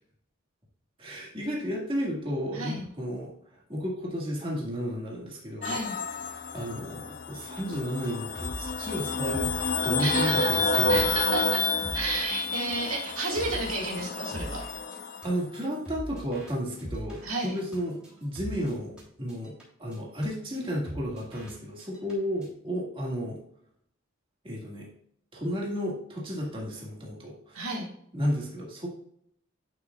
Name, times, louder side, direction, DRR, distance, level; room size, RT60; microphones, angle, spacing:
voice 1, 1.0-3.3 3.7-5.8 6.5-9.5 9.8-11.1 12.8-12.9 15.2-19.5 19.8-23.4 24.4-24.9 25.3-27.6 28.1-28.9, equal, 25° right, -3 dB, 1.8 m, -32 dB
voice 2, 2.5-2.9 5.6-5.9 10.0-14.6 17.2-17.6 27.5-27.9, right 3 dB, 75° right, -1 dB, 2.0 m, -32 dB
sound 1, 5.6-15.3, left 4 dB, 40° left, 0.4 m, -30 dB
sound 2, 7.4-19.0 19.3-19.6 19.9-20.0 20.2-20.3 20.5-20.6 20.9-21.5 21.8-22.1 22.4-22.5, right 1 dB, 5° right, 3.2 m, -42 dB
11.0 x 5.9 x 2.4 m, 0.68 s
head